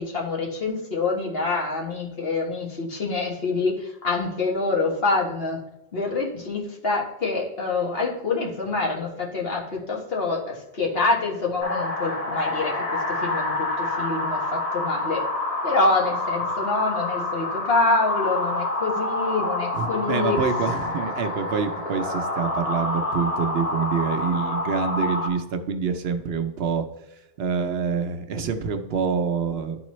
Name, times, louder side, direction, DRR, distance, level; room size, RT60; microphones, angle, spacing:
voice 1, 0.0-5.6 5.9-15.2 15.6-20.4, left 3 dB, 65° left, -2 dB, 1.7 m, -26 dB
sound 1, 11.6-25.3, left 2 dB, 35° left, 1.2 m, -27 dB
voice 2, 19.7-26.8 27.4-29.8, right 6 dB, 70° right, 6 dB, 0.9 m, -26 dB
11.5 x 3.9 x 3.1 m, 0.96 s
omnidirectional pair, 1.1 m